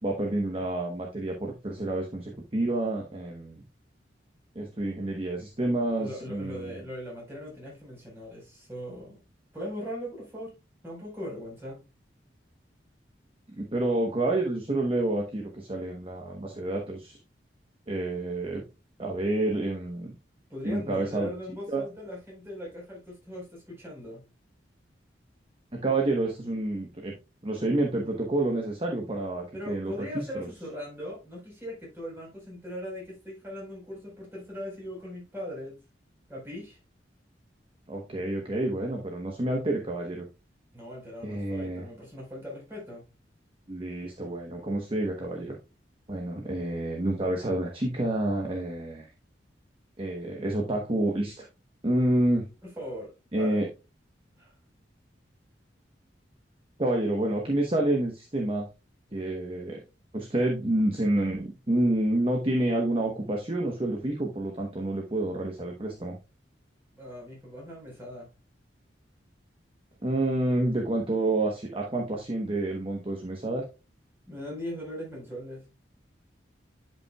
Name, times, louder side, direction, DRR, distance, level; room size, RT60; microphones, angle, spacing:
voice 1, 0.0-3.6 4.5-6.8 13.5-17.2 17.9-18.6 19.0-20.1 20.6-21.3 21.7-21.9 25.7-27.1 27.4-30.5 37.9-40.2 41.2-41.9 43.7-45.6 46.1-49.1 50.0-51.5 51.8-52.5 53.3-53.7 56.8-58.7 59.1-59.8 60.1-66.2 70.0-73.6, right 1 dB, 30° right, 0 dB, 1.1 m, -28 dB
voice 2, 5.8-9.2 9.5-10.5 10.8-11.8 20.5-24.2 29.5-35.8 36.3-36.8 40.7-43.0 52.8-53.1 53.4-53.6 54.3-54.5 66.9-68.3 74.3-75.6, equal, 15° right, -4 dB, 4.4 m, -39 dB
10.5 x 5.5 x 2.3 m, 0.29 s
head